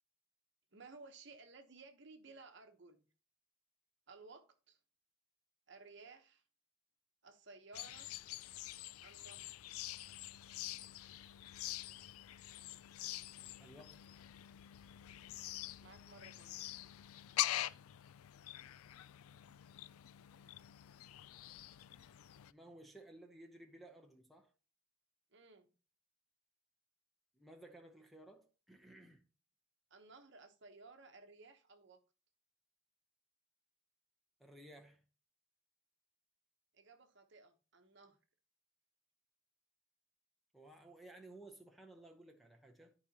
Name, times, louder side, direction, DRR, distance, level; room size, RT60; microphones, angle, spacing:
voice 1, 0.7-3.0 4.1-4.8 5.7-6.4 7.2-8.1 9.0-9.5 15.8-16.6 25.3-25.7 29.9-32.0 36.7-38.2, right 3 dB, 55° right, 1.0 m, -57 dB
sound 1, 7.7-22.5, left 14 dB, 85° left, 0.3 m, -45 dB
voice 2, 13.6-14.1 22.5-24.5 27.3-29.2 34.4-35.0 40.5-42.9, right 1 dB, ahead, 0.8 m, -57 dB
13.0 x 4.9 x 2.9 m
head